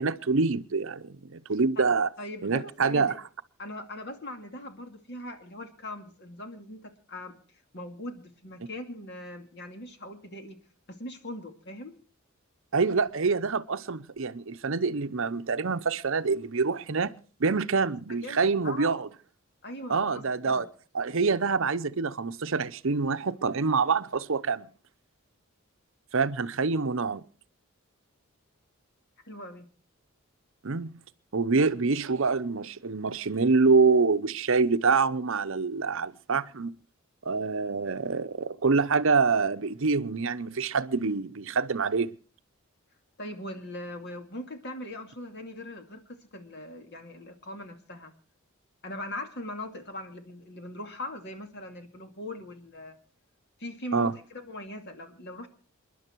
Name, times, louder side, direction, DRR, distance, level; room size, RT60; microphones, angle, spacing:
voice 1, 0.0-2.1 2.4-3.1 12.7-19.1 19.9-20.7 20.9-24.7 26.1-27.2 30.6-31.0 31.3-36.8 37.2-42.1 53.9-54.1, right 4 dB, 60° right, 0.7 m, -26 dB
voice 2, 2.2-3.2 3.6-7.4 7.7-10.6 10.9-11.9 18.1-19.0 19.6-20.7 29.2-29.7 43.2-48.1 48.8-53.0 53.6-55.5, left 1 dB, 50° left, 2.4 m, -40 dB
28.0 x 11.0 x 4.6 m
head